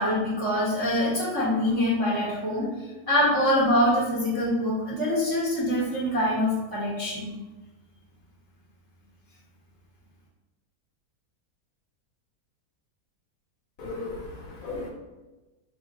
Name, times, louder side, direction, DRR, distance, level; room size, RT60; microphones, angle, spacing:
voice 1, 0.0-2.7 3.1-7.3, left 1 dB, 20° right, -7 dB, 0.8 m, -24 dB
voice 2, 13.8-14.9, left 3 dB, 70° left, -1 dB, 1.0 m, -36 dB
3.1 x 2.4 x 3.9 m, 1.1 s
omnidirectional pair, 1.6 m